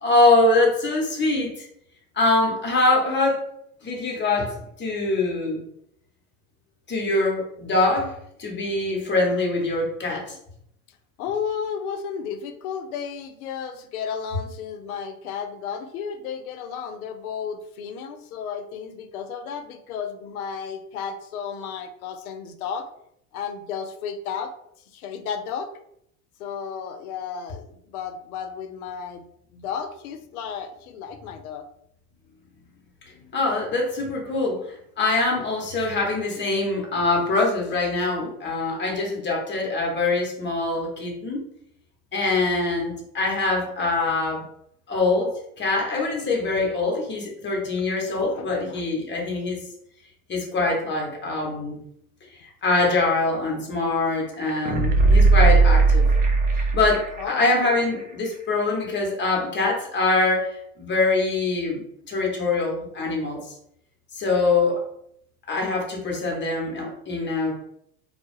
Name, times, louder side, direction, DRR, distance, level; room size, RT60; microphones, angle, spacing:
voice 1, 0.0-1.7 2.2-3.4 3.8-5.6 6.9-8.1 8.4-10.4 33.3-34.6 35.0-41.4 42.1-44.4 44.9-45.3 45.6-49.6 50.3-51.8 52.4-56.0 56.7-61.8 62.1-63.5 64.1-64.8 65.5-67.5, left 2 dB, 25° left, 0 dB, 0.8 m, -23 dB
voice 2, 11.2-22.9 23.3-24.5 24.9-25.7 26.4-29.2 29.5-31.6 48.3-48.8 57.2-57.8, left 7 dB, 80° left, 8 dB, 0.5 m, -33 dB
sound 1, 54.4-57.3 57.6-57.7, right 3 dB, 25° right, 0.3 m, -17 dB
2.2 x 2.0 x 3.1 m, 0.72 s
hypercardioid pair, 85°, 44 cm